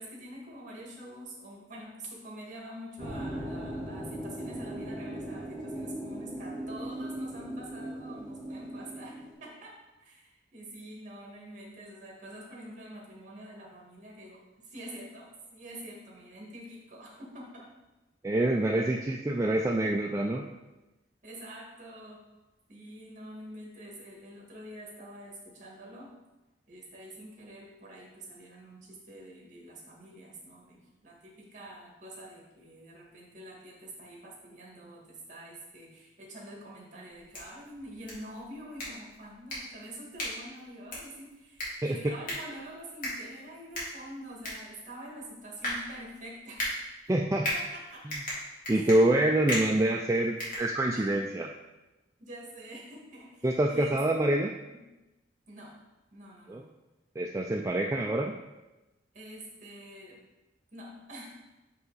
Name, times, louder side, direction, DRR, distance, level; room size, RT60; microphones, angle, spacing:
voice 1, 0.0-9.7 10.0-17.7 21.2-22.2 22.7-26.1 26.7-46.7 47.5-48.1 48.7-48.9 50.9-51.0 52.2-54.0 54.7-54.8 55.5-55.7 56.1-56.7 59.1-60.2 60.7-61.3, right 1 dB, 45° right, -2 dB, 1.9 m, -46 dB
sound 1, 3.0-9.3, right 1 dB, 15° left, 2.0 m, -38 dB
voice 2, 18.2-20.5 41.8-42.0 47.1-47.5 48.1-48.2 48.7-51.5 53.4-54.5 56.5-56.6 57.2-58.3, right 1 dB, 15° right, 1 dB, 0.3 m, -26 dB
sound 2, 37.1-51.2, left 1 dB, 50° left, 2.3 m, -39 dB
6.4 x 5.6 x 4.0 m, 1.1 s
head